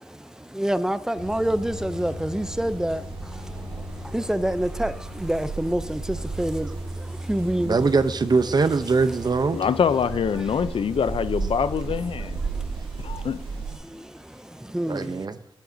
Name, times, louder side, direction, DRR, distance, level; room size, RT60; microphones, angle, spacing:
voice 1, 0.6-3.0 4.1-4.9 5.2-6.0 6.4-6.7 7.3-7.8 14.7-15.0, right 1 dB, 5° right, 0.5 m, -25 dB
sound 1, 1.1-13.8, right 3 dB, 75° right, 2.0 m, -34 dB
voice 2, 7.6-9.6 14.9-15.4, right 4 dB, 45° right, 0.6 m, -22 dB
voice 3, 9.5-12.4 13.0-13.4, left 7 dB, 70° left, 0.5 m, -24 dB
11.0 x 9.0 x 2.7 m
cardioid pair, 75°, 10 cm